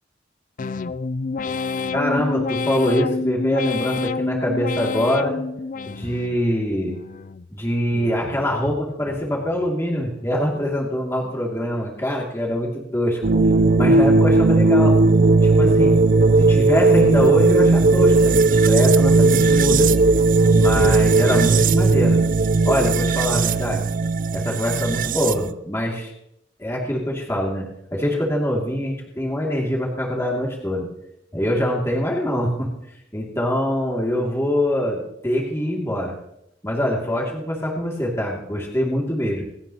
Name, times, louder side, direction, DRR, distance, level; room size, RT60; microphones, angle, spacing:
sound 1, 0.6-6.4 6.8-7.5 7.9-8.6 9.0-9.7 10.1-10.7 11.2-11.7, left 4 dB, 45° left, 0.4 m, -29 dB
voice 1, 1.9-5.4 5.9-7.0 7.5-13.2 13.8-15.0 15.4-16.0 16.4-19.9 20.3-22.2 22.6-23.8 24.3-26.1 26.6-30.9 31.3-32.7 33.1-36.1 36.6-39.4, equal, 15° left, -2 dB, 2.5 m, -24 dB
sound 2, 13.2-25.5, right 3 dB, 45° right, 0.4 m, -16 dB
27.0 x 9.5 x 3.0 m, 0.80 s
head